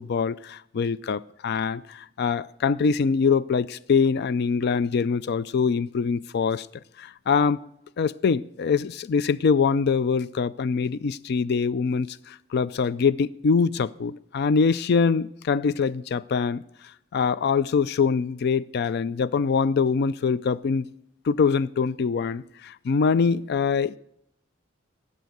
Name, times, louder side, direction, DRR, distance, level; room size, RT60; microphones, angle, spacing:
voice 1, 0.0-6.7 7.0-7.6 8.0-16.6 17.1-20.9 21.2-24.0, left 5 dB, 55° left, 0.4 m, -24 dB
15.5 x 5.6 x 7.8 m
head